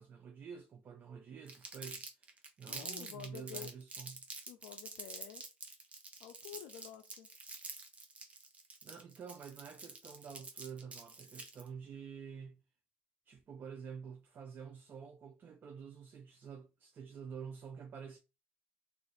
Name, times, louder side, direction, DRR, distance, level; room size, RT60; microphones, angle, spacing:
voice 1, 0.0-4.3 6.5-6.6 8.8-12.6 13.3-18.2, right 7 dB, 45° right, 0.5 m, -49 dB
Crumpling crinkling, 1.5-11.7, right 3 dB, 30° right, 0.8 m, -47 dB
voice 2, 2.7-3.7 4.5-5.4 6.2-7.3, left 12 dB, 80° left, 0.3 m, -50 dB
2.4 x 2.4 x 3.9 m
supercardioid pair, 90°, 5 cm